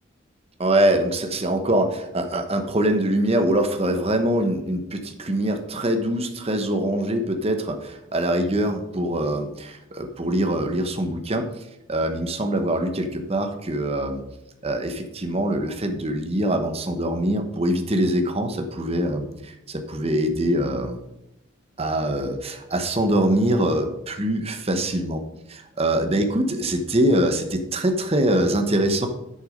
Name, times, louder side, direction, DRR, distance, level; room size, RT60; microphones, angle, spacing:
voice 1, 0.6-11.4 11.9-14.2 14.6-21.0 21.8-25.2 25.5-29.1, right 1 dB, 30° right, 6 dB, 1.0 m, -23 dB
8.3 x 6.6 x 5.1 m, 0.86 s
head